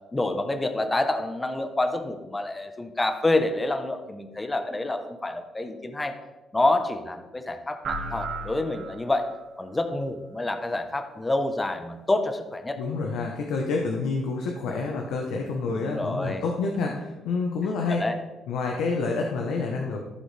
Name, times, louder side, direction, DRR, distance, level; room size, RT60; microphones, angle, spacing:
voice 1, 0.1-6.1 6.5-9.3 9.6-12.8 15.7-16.4 17.9-18.2, left 2 dB, 20° left, 7 dB, 1.0 m, -27 dB
sound 1, 7.8-9.4, right 3 dB, 60° right, 1.9 m, -34 dB
voice 2, 12.8-18.1 18.5-20.0, left 4 dB, 90° left, 1 dB, 1.0 m, -28 dB
14.5 x 5.1 x 3.4 m, 1.1 s
cardioid pair, 90°, 0 cm